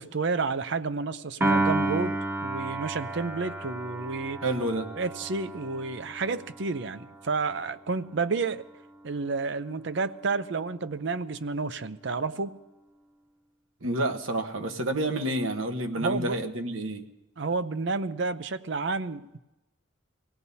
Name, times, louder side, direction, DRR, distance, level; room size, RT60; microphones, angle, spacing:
voice 1, 0.0-4.4 5.0-8.6 9.0-12.6 15.9-16.4 17.4-19.4, right 4 dB, 60° right, 13 dB, 0.6 m, -30 dB
Piano, 1.4-7.8, right 2 dB, 10° right, 1.0 m, -32 dB
voice 2, 4.4-4.9 13.8-17.0, right 1 dB, 90° right, 6 dB, 1.2 m, -29 dB
25.5 x 17.0 x 2.8 m, 0.98 s
head